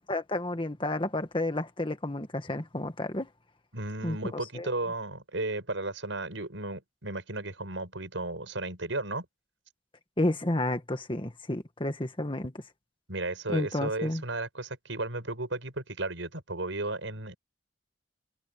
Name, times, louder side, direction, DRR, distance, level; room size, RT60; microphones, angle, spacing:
voice 1, 0.0-3.3 4.0-4.7 10.2-12.5 13.5-14.2, left 1 dB, 25° left, 1.8 m, -31 dB
voice 2, 3.7-9.3 13.1-17.4, right 2 dB, 90° right, 6.2 m, -34 dB
head